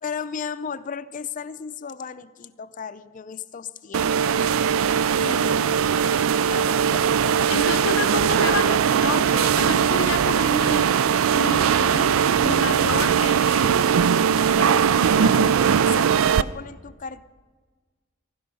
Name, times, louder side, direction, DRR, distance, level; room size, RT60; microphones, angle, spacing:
voice 1, 0.0-4.3 5.1-7.8 8.0-8.1 15.8-17.3, left 6 dB, 40° left, 12 dB, 0.4 m, -36 dB
sound 1, 3.9-16.4, right 7 dB, 85° right, 0.4 m, -20 dB
voice 2, 7.5-10.9 11.3-13.9 14.6-15.8, left 5 dB, 75° left, 12 dB, 0.7 m, -30 dB
15.0 x 12.5 x 5.4 m, 1.4 s
head